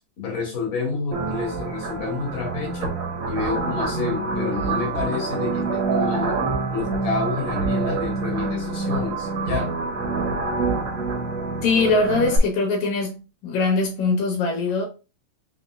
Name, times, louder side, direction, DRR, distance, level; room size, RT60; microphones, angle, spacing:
voice 1, 0.2-2.9 3.3-6.4 6.7-9.7, left 4 dB, 35° left, 1.9 m, -29 dB
sound 1, 1.1-12.4, right 3 dB, 60° right, 1.2 m, -26 dB
voice 2, 11.6-13.2 13.4-14.9, left 3 dB, 75° left, 2.4 m, -22 dB
4.5 x 4.1 x 2.3 m
omnidirectional pair, 3.3 m